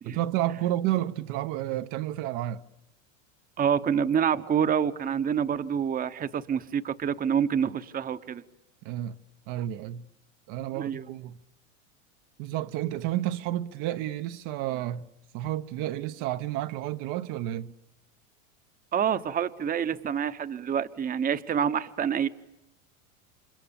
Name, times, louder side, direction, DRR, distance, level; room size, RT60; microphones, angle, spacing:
voice 1, 0.0-2.7 8.8-9.2 9.5-10.0 10.5-11.4 12.4-15.1 15.3-17.7, right 13 dB, 50° right, 1.0 m, -31 dB
voice 2, 3.6-8.4 10.7-11.1 18.9-22.3, right 8 dB, 20° right, 1.0 m, -27 dB
29.5 x 26.0 x 7.1 m
hypercardioid pair, 110°, 39 cm